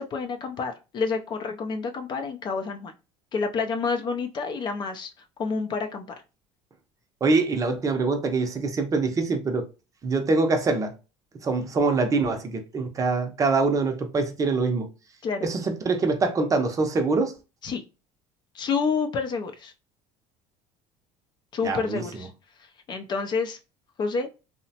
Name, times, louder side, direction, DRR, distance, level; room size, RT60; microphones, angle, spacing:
voice 1, 0.0-2.9 3.3-5.1 5.4-6.2 15.2-15.5 17.6-17.8 18.5-19.7 21.5-22.3 22.9-23.6 24.0-24.3, left 5 dB, 35° left, 0.4 m, -28 dB
voice 2, 7.2-9.7 10.0-10.9 11.4-14.9 15.4-17.3 21.6-22.2, right 3 dB, 25° right, 0.6 m, -24 dB
2.8 x 2.1 x 2.7 m
cardioid pair, 120°, 12 cm